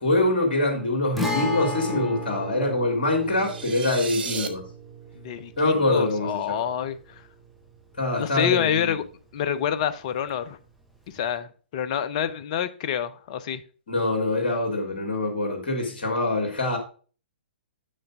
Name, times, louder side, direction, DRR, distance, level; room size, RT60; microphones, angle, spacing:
voice 1, 0.0-4.6 5.6-6.6 8.0-9.0 13.9-16.8, left 2 dB, 55° left, 3.0 m, -24 dB
Guitar, 1.2-8.8 9.0-9.1 11.2-11.3, equal, ahead, 1.0 m, -35 dB
sound 1, 3.3-4.5, right 6 dB, 60° right, 0.9 m, -34 dB
voice 2, 5.2-7.2 8.1-9.0 9.3-10.6 11.1-13.6, left 9 dB, 40° left, 0.7 m, -27 dB
7.2 x 6.4 x 3.6 m
figure-of-eight pair, 120°, 6 cm